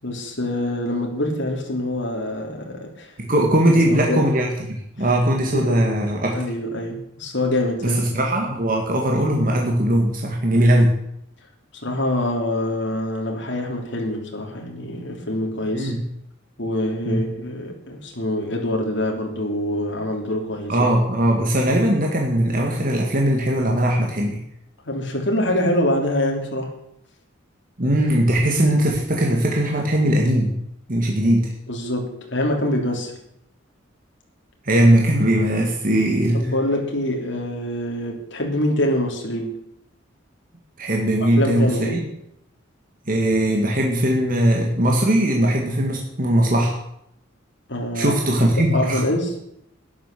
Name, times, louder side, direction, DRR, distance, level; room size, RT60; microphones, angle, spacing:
voice 1, 0.0-3.1 3.9-4.3 5.5-5.7 6.3-8.0 11.8-15.9 16.6-20.9 24.8-26.7 31.7-33.1 36.3-39.6 41.3-42.0 47.7-48.2 48.6-49.3, left 1 dB, 60° left, 1 dB, 3.3 m, -25 dB
voice 2, 3.2-6.4 7.8-10.9 15.7-16.0 17.1-17.2 20.7-24.4 27.8-30.5 30.9-31.5 34.6-36.5 40.8-42.0 43.1-46.8 47.9-49.0, right 1 dB, 45° right, 0 dB, 2.0 m, -19 dB
12.0 x 11.0 x 6.8 m, 0.76 s
head